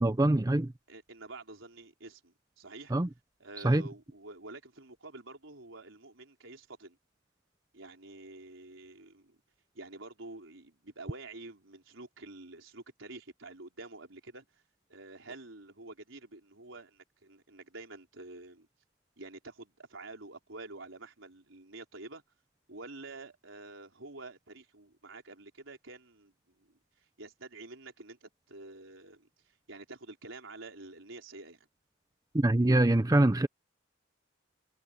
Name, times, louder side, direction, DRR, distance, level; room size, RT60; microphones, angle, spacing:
voice 1, 0.0-0.7 2.9-3.1 3.6-3.8 32.3-33.5, right 1 dB, 20° right, 0.5 m, -24 dB
voice 2, 0.9-2.9 3.4-7.0 7.7-9.4 9.7-14.6 14.9-18.7 19.2-22.2 22.7-31.7, right 2 dB, 85° right, 4.5 m, -48 dB
head